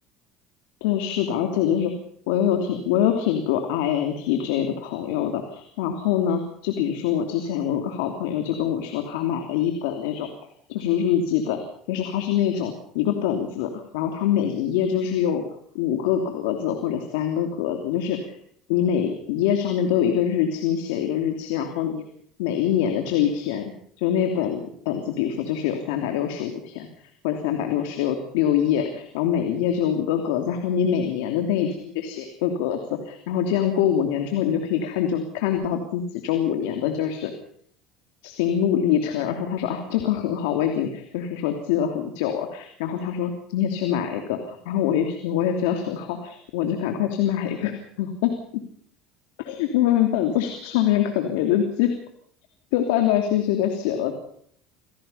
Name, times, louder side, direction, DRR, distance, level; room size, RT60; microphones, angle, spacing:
voice 1, 0.8-1.9 2.3-10.3 10.7-11.6 11.9-15.4 15.7-18.3 18.7-22.0 22.4-23.7 24.0-26.9 27.2-37.3 38.2-48.3 49.4-51.9 52.7-54.1, left 9 dB, 90° left, 5 dB, 3.0 m, -24 dB
27.5 x 17.5 x 5.7 m, 0.63 s
supercardioid pair, 120°, 0 cm